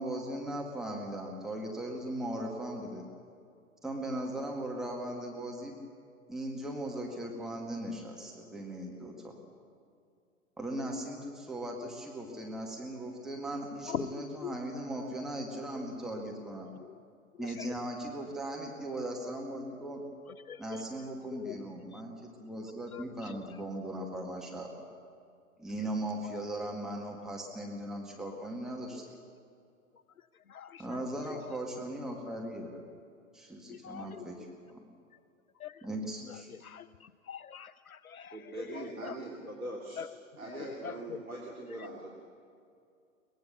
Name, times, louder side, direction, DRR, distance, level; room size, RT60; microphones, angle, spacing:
voice 1, 0.0-3.1 3.8-5.8 6.3-9.3 10.6-16.7 17.4-20.0 20.6-24.8 25.6-29.2 30.8-32.8 33.3-34.8 35.8-36.5, right 1 dB, ahead, -1 dB, 2.0 m, -38 dB
voice 2, 20.5-20.8 21.3-21.6 21.9-22.0 22.9-23.0 30.5-30.8 33.7-34.2 35.6-35.7 36.6-36.8 37.3-39.2 40.0-40.1 40.5-41.2, left 8 dB, 85° left, 16 dB, 0.6 m, -42 dB
voice 3, 38.3-40.0 40.4-42.1, right 1 dB, 80° right, -1 dB, 3.2 m, -41 dB
23.0 x 20.0 x 7.0 m, 2.4 s
figure-of-eight pair, 115°, 42 cm